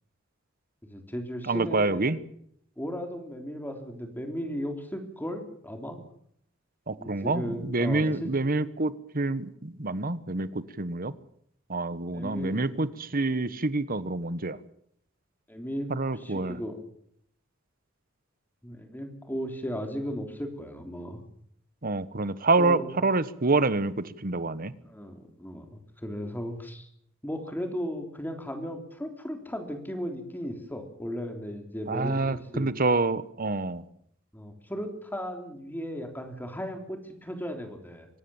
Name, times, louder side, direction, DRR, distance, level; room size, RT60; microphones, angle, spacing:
voice 1, 0.8-2.2 2.8-6.0 7.0-8.3 12.1-12.6 15.5-16.9 18.6-21.2 22.6-23.0 24.6-26.9 27.2-32.7 34.3-38.1, equal, 10° left, 5 dB, 3.6 m, -36 dB
voice 2, 1.4-2.2 6.9-11.1 11.7-14.6 15.9-16.6 21.8-24.7 31.9-33.8, right 3 dB, 45° right, 15 dB, 1.3 m, -27 dB
24.5 x 18.5 x 7.3 m, 0.69 s
head